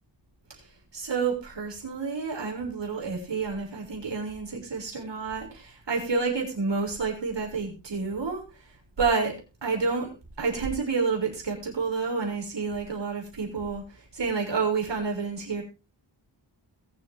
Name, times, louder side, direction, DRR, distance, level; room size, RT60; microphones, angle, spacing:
voice 1, 0.9-8.4 9.0-9.3 9.6-10.1 10.4-13.8 14.1-15.6, right 4 dB, 70° right, 0 dB, 6.5 m, -29 dB
22.0 x 7.8 x 3.7 m, 0.30 s
cardioid pair, 70°, 45 cm